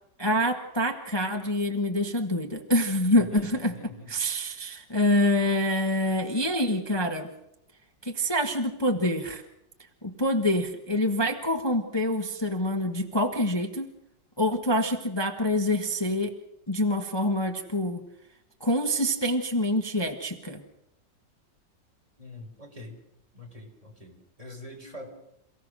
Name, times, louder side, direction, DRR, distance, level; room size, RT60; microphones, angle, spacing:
voice 1, 0.2-3.7 4.1-7.3 8.0-9.4 10.0-13.9 14.4-16.3 16.7-18.0 18.6-20.6, left 1 dB, 15° left, 4 dB, 1.2 m, -26 dB
voice 2, 3.2-4.1 22.2-23.0 23.3-25.1, left 2 dB, 20° right, 1 dB, 4.1 m, -44 dB
28.0 x 17.0 x 6.3 m, 0.82 s
omnidirectional pair, 2.0 m